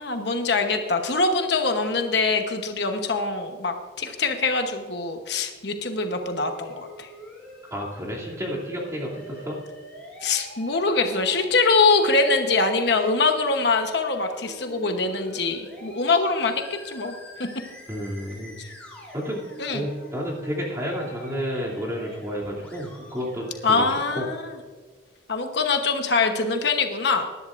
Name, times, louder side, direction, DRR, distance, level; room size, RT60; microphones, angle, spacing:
voice 1, 0.0-7.1 10.2-17.2 19.6-19.8 23.6-24.5 25.3-27.2, left 3 dB, 60° left, 5 dB, 1.0 m, -23 dB
Musical instrument, 6.0-23.9, equal, 5° left, 3.2 m, -44 dB
voice 2, 7.7-9.6 17.9-18.6 19.1-19.4 19.7-23.8 24.1-24.3, equal, 15° right, -4 dB, 2.8 m, -31 dB
20.0 x 11.0 x 2.6 m, 1.5 s
head